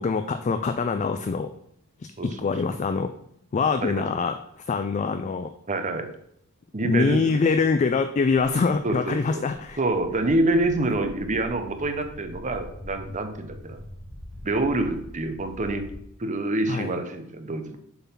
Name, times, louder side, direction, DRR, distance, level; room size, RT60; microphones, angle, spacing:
voice 1, 0.0-1.5 2.0-3.1 3.5-4.4 4.7-5.5 6.8-9.8 16.7-16.9, left 4 dB, 30° left, 9 dB, 0.3 m, -24 dB
voice 2, 2.2-2.5 3.8-4.3 5.7-6.1 6.7-7.4 8.8-9.4 9.8-13.8 14.4-15.9 16.2-17.8, right 2 dB, 35° right, 7 dB, 0.8 m, -27 dB
Walk footsteps, 9.5-16.0, left 1 dB, ahead, 1.0 m, -43 dB
7.0 x 3.9 x 5.7 m, 0.73 s
head